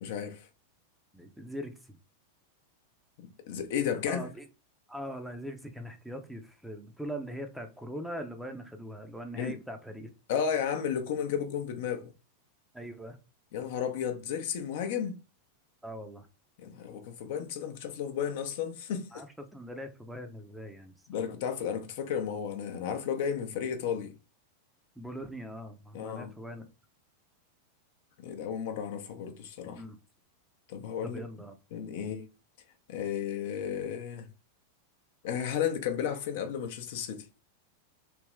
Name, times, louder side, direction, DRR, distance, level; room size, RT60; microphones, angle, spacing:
voice 1, 0.0-0.5 3.2-4.3 9.4-9.6 10.3-12.1 13.5-15.2 16.6-19.2 21.1-24.1 25.9-26.3 28.2-29.8 30.7-31.2 31.7-32.2 32.9-34.3 35.2-37.3, left 8 dB, 50° left, 0.6 m, -33 dB
voice 2, 1.1-2.0 4.1-4.5 4.9-10.1 12.7-13.2 15.8-16.3 19.1-19.3 19.5-21.3 25.0-26.6 29.7-30.0 31.0-31.6 31.9-32.1, equal, 5° right, 0.6 m, -41 dB
3.4 x 2.9 x 3.1 m
figure-of-eight pair, 90°, 0 cm